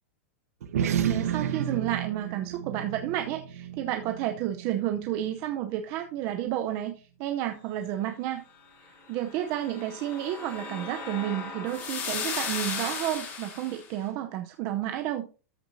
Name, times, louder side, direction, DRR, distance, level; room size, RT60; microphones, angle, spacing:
sound 1, 0.6-5.4, right 9 dB, 80° right, 1.1 m, -32 dB
voice 1, 1.1-8.4 9.1-15.3, right 12 dB, 35° right, 6 dB, 0.7 m, -31 dB
sound 2, 9.2-13.8, left 5 dB, 25° left, 3.0 m, -36 dB
13.5 x 6.0 x 2.7 m, 0.34 s
supercardioid pair, 165°, 8 cm